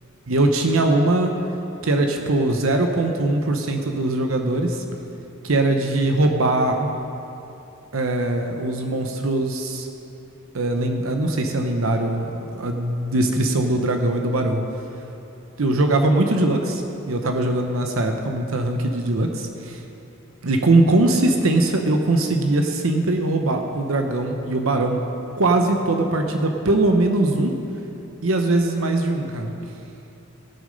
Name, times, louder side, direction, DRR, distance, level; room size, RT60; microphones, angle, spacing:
voice 1, 0.3-1.3 1.8-4.8 5.4-6.9 7.9-9.9 10.5-14.6 15.6-19.8 20.4-25.0 25.4-27.5 28.2-29.5, right 2 dB, 75° right, 4 dB, 0.8 m, -21 dB
18.0 x 6.5 x 5.3 m, 2.9 s
head